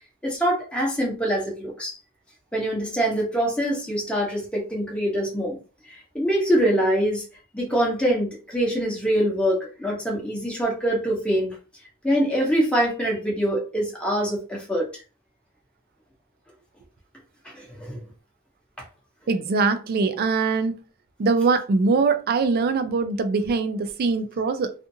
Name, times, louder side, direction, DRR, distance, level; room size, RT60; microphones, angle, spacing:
voice 1, 0.2-1.9 2.5-5.6 5.8-7.2 7.5-11.6 12.0-14.9 17.4-18.0, equal, 5° left, 0.8 m, -24 dB
voice 2, 19.3-20.8 21.2-24.7, right 4 dB, 45° right, 0.3 m, -22 dB
2.5 x 2.4 x 2.6 m
head